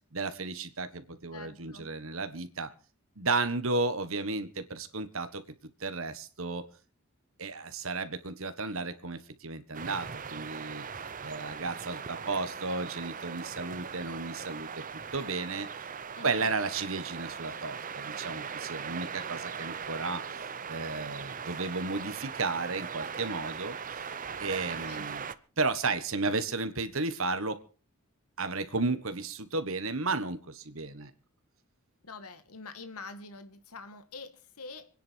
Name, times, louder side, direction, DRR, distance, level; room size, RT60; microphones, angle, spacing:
voice 1, 0.1-2.7 3.2-5.4 5.8-6.6 7.4-10.8 11.2-14.7 15.1-15.7 16.2-20.2 20.7-23.7 24.4-25.3 25.6-27.6 28.4-31.1, right 3 dB, 65° right, 11 dB, 1.5 m, -33 dB
voice 2, 1.3-1.9 16.1-16.5 24.9-25.1 32.0-34.9, left 3 dB, 90° left, 10 dB, 1.8 m, -45 dB
sound 1, 9.7-25.4, right 6 dB, 35° right, 0.8 m, -39 dB
26.0 x 10.0 x 4.6 m, 0.37 s
head